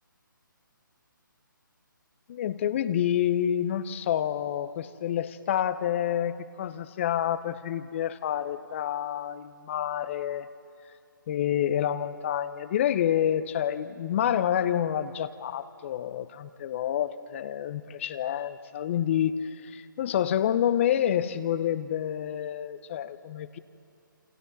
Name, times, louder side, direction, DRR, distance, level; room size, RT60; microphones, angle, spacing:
voice 1, 2.3-10.5 11.3-23.6, left 10 dB, 35° left, 13 dB, 0.9 m, -28 dB
28.5 x 27.5 x 4.1 m, 2.3 s
figure-of-eight pair, 150°, 11 cm